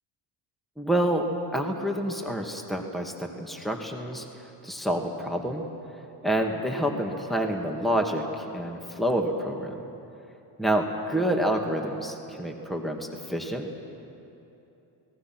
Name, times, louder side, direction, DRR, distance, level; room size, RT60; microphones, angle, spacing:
voice 1, 0.8-1.2 1.5-4.2 4.6-5.6 6.2-9.8 10.6-13.7, right 1 dB, ahead, 2 dB, 2.2 m, -28 dB
29.0 x 18.5 x 6.2 m, 2.9 s
cardioid pair, 80°, 48 cm